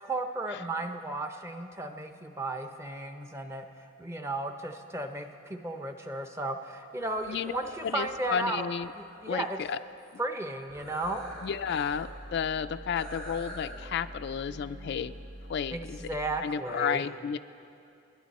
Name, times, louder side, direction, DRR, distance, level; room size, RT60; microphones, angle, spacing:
voice 1, 0.0-8.7 8.9-9.6 10.2-11.4 15.7-17.0, right 2 dB, 15° right, 6 dB, 0.7 m, -34 dB
sound 1, 7.0-9.8 10.7-12.0 12.3-12.4 13.0-13.7, equal, 75° right, 4.6 m, -47 dB
voice 2, 7.8-8.9 9.3-9.8 11.4-15.1 15.5-16.1 16.4-17.4, left 7 dB, 55° left, 12 dB, 0.3 m, -32 dB
sound 2, 11.0-16.4, right 1 dB, 55° right, 0.7 m, -46 dB
28.0 x 10.5 x 4.2 m, 2.7 s
head